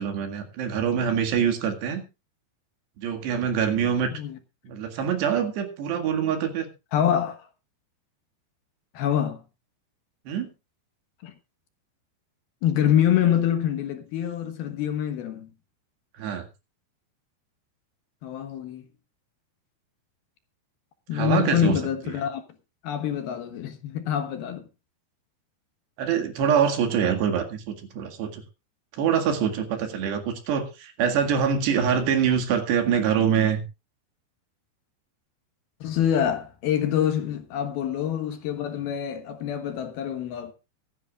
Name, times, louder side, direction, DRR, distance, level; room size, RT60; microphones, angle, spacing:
voice 1, 0.0-2.0 3.0-4.1 4.7-6.7 10.3-10.5 16.2-16.5 21.1-21.8 26.0-28.4 28.9-33.6, right 7 dB, 70° right, 4.2 m, -24 dB
voice 2, 6.9-7.5 8.9-9.4 11.2-11.3 12.6-15.5 18.2-18.8 21.1-22.4 22.8-24.7 35.8-40.5, left 10 dB, 65° left, 3.0 m, -25 dB
23.5 x 10.5 x 2.4 m
omnidirectional pair, 5.1 m